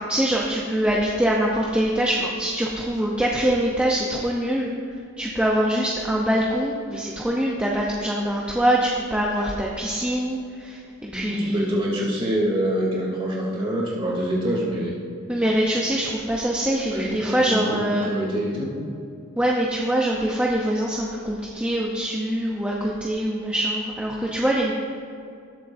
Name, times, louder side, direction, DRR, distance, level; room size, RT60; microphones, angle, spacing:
voice 1, 0.0-4.7 5.2-11.6 15.3-18.1 19.4-24.7, right 1 dB, 5° right, -4 dB, 0.7 m, -24 dB
voice 2, 11.1-15.0 16.9-18.8, equal, 25° right, -6 dB, 2.9 m, -26 dB
20.0 x 7.5 x 2.7 m, 2.4 s
head